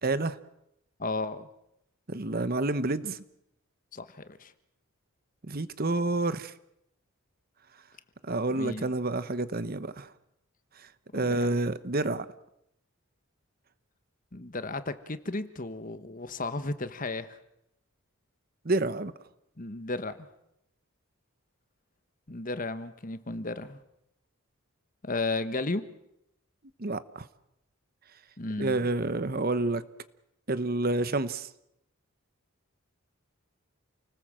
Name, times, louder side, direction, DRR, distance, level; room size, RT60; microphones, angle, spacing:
voice 1, 0.0-0.4 2.1-3.2 5.4-6.5 8.2-10.1 10.8-12.3 18.6-19.1 26.8-27.3 28.6-29.8 30.5-31.5, right 2 dB, 40° right, 14 dB, 1.0 m, -29 dB
voice 2, 1.0-1.5 3.9-4.5 8.5-8.9 11.1-11.6 14.3-17.4 19.6-20.3 22.3-23.8 25.0-25.8 28.4-28.9, left 2 dB, 35° left, 11 dB, 1.3 m, -34 dB
29.0 x 19.5 x 7.6 m, 0.82 s
head